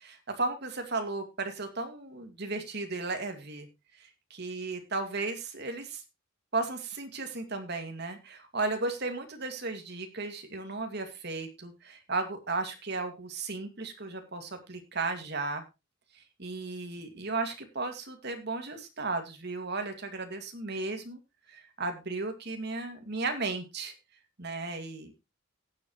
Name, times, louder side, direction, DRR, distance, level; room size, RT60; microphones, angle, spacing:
voice 1, 0.0-3.7 4.3-6.0 6.5-15.6 16.4-21.2 21.5-23.9 24.4-25.1, right 3 dB, 55° right, 6 dB, 2.2 m, -35 dB
18.0 x 7.6 x 3.1 m, 0.25 s
head